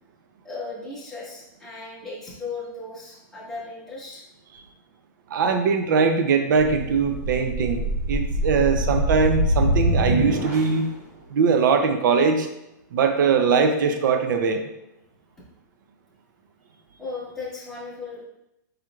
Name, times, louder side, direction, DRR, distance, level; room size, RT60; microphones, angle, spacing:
voice 1, 0.4-4.2 13.4-13.5 17.0-18.3, left 3 dB, 5° left, -9 dB, 1.6 m, -36 dB
voice 2, 5.3-10.9 11.3-12.5 12.9-14.6, right 5 dB, 75° right, 6 dB, 0.5 m, -21 dB
sound 1, 6.6-10.9, equal, 50° right, 1.2 m, -24 dB
5.0 x 4.4 x 2.4 m, 0.86 s
supercardioid pair, 155°, 11 cm